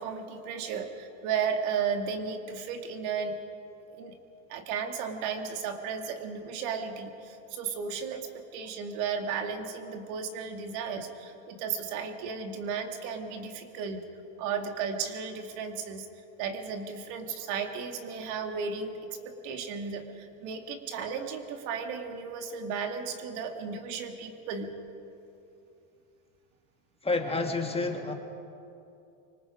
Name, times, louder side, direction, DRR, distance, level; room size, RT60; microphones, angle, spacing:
voice 1, 0.0-3.4 4.0-4.1 4.5-14.0 14.4-16.1 16.4-19.0 19.2-24.7, right 6 dB, 75° right, 5 dB, 2.4 m, -34 dB
voice 2, 27.0-28.1, left 3 dB, 15° left, 3 dB, 1.9 m, -29 dB
25.0 x 24.5 x 5.1 m, 2.7 s
supercardioid pair, 125°, 43 cm